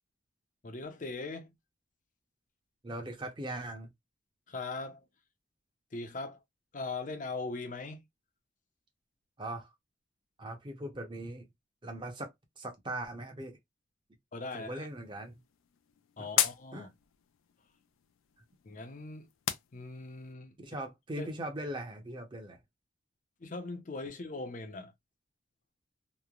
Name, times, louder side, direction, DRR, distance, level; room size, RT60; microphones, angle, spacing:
voice 1, 0.6-1.5 4.5-5.0 5.9-6.4 6.7-8.0 14.3-14.9 16.2-16.9 18.6-19.3 19.7-20.6 21.2-21.3 23.4-24.9, left 3 dB, 40° left, 0.5 m, -40 dB
voice 2, 2.8-3.9 9.4-9.7 10.4-11.5 11.8-13.6 14.5-15.4 16.2-16.3 16.7-16.9 20.6-22.6, right 1 dB, 25° right, 0.7 m, -40 dB
sound 1, 14.9-20.3, left 11 dB, 90° left, 0.4 m, -38 dB
3.0 x 2.1 x 2.3 m
head